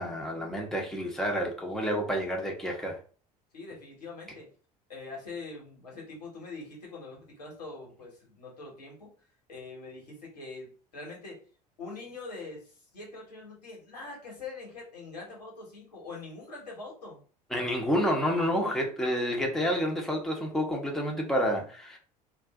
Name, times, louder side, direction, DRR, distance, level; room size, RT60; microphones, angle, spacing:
voice 1, 0.0-3.0 17.5-22.0, equal, ahead, 0.8 m, -29 dB
voice 2, 3.5-4.5 4.9-9.1 9.5-11.4 11.8-17.2, left 3 dB, 80° left, 1.3 m, -43 dB
2.6 x 2.5 x 3.5 m
figure-of-eight pair, 65°, 21 cm